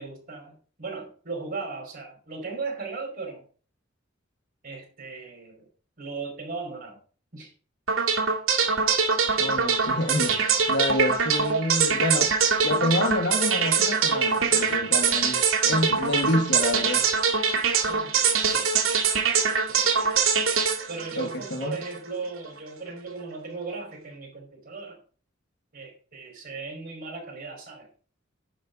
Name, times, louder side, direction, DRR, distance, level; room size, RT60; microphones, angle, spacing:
voice 1, 0.0-3.4 4.6-5.7 6.0-7.0 7.3-7.5 17.9-18.7 19.7-20.1 20.9-25.0 25.7-27.9, right 4 dB, 45° right, 4.6 m, -37 dB
sound 1, 7.9-22.0, right 5 dB, 85° right, 1.9 m, -23 dB
voice 2, 9.4-10.4 10.7-12.3 12.6-17.0 21.2-21.8, left 1 dB, 60° left, 1.4 m, -28 dB
10.5 x 5.4 x 5.2 m
head